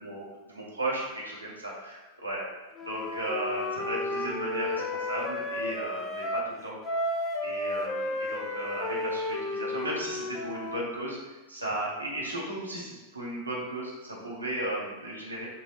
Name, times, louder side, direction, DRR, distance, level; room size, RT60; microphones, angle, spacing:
voice 1, 0.0-2.4 2.9-6.8 7.4-15.5, right 1 dB, 85° right, -5 dB, 0.8 m, -35 dB
Wind instrument woodwind instrument, 2.8-6.5 6.8-10.9, left 1 dB, 30° left, 0.4 m, -33 dB
5.4 x 2.4 x 2.7 m, 1.2 s
figure-of-eight pair, 90°, 0 cm